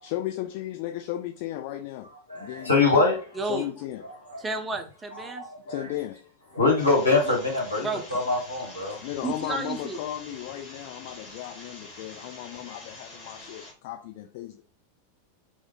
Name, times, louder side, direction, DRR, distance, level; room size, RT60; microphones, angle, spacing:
voice 1, 0.0-2.1 2.3-3.1 3.4-4.0 5.6-6.2 8.9-14.6, left 13 dB, 50° left, 0.3 m, -35 dB
voice 2, 2.3-3.5 4.3-4.4 5.1-5.9 6.5-9.0, left 3 dB, 85° left, 1.2 m, -24 dB
voice 3, 4.4-5.4 7.8-8.0 9.2-10.0, right 4 dB, 15° right, 0.4 m, -31 dB
sound 1, 6.8-13.7, left 2 dB, 30° left, 1.4 m, -45 dB
3.0 x 2.0 x 3.7 m
figure-of-eight pair, 90°, 0 cm